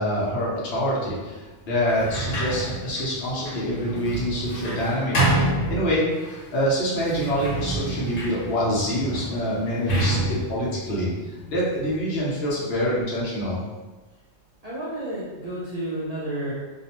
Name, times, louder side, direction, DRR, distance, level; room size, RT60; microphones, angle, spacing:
voice 1, 0.0-5.1 5.7-10.2 10.5-13.6, equal, 60° left, -6 dB, 0.9 m, -26 dB
Sliding door, 1.8-6.4 7.0-11.8, right 1 dB, 80° left, 1.1 m, -28 dB
voice 2, 14.6-16.5, right 1 dB, 60° right, -9 dB, 0.4 m, -31 dB
2.5 x 2.0 x 2.8 m, 1.2 s
omnidirectional pair, 1.3 m